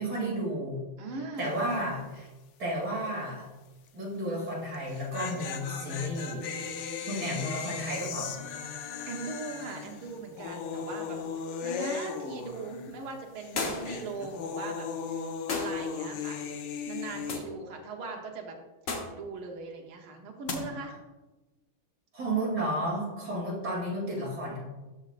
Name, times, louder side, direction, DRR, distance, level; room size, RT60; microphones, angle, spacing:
voice 1, 0.0-0.9 1.4-2.3 2.6-3.5 3.9-6.5 7.1-8.4 22.1-24.6, right 1 dB, 50° right, -5 dB, 3.2 m, -32 dB
voice 2, 1.0-1.6 7.0-7.5 9.1-11.2 11.6-16.5 16.9-18.6 19.2-20.9, right 3 dB, 85° right, 2 dB, 1.8 m, -40 dB
sound 1, 1.4-1.7 2.0-2.1 4.7-13.1 13.4-17.4, left 6 dB, 70° left, 1.3 m, -37 dB
sound 2, 13.6-14.0 15.5-15.8 17.3-17.5 18.9-19.2 20.5-20.6, left 3 dB, 50° left, 1.1 m, -33 dB
12.5 x 5.2 x 2.5 m, 1.1 s
omnidirectional pair, 2.3 m